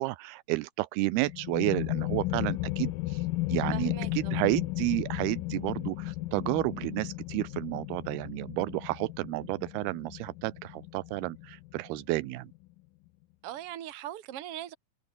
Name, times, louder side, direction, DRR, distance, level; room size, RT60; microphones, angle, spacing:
voice 1, 0.0-3.2 3.5-12.5, right 20 dB, 85° right, 2.5 m, -31 dB
sound 1, 1.1-12.5, left 19 dB, 80° left, 2.1 m, -34 dB
voice 2, 3.7-4.4 13.4-14.7, right 12 dB, 45° right, 2.1 m, -40 dB
open air
omnidirectional pair, 4.6 m